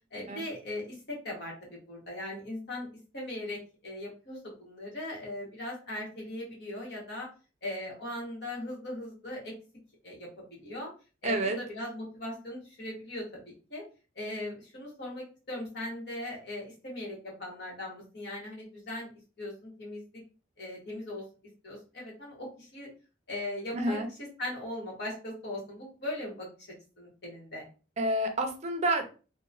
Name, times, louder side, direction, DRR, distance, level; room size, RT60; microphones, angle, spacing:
voice 1, 0.1-2.9 3.1-7.3 7.6-9.5 10.0-10.9 11.2-13.4 13.7-13.8 14.1-19.1 19.4-20.0 20.6-21.2 21.6-22.9 23.3-24.0 24.4-26.5 27.0-27.6, left 1 dB, 60° left, -3 dB, 1.2 m, -39 dB
voice 2, 11.2-11.6 23.7-24.1 28.0-29.0, right 1 dB, 35° right, 4 dB, 0.5 m, -28 dB
2.9 x 2.2 x 2.5 m, 0.34 s
head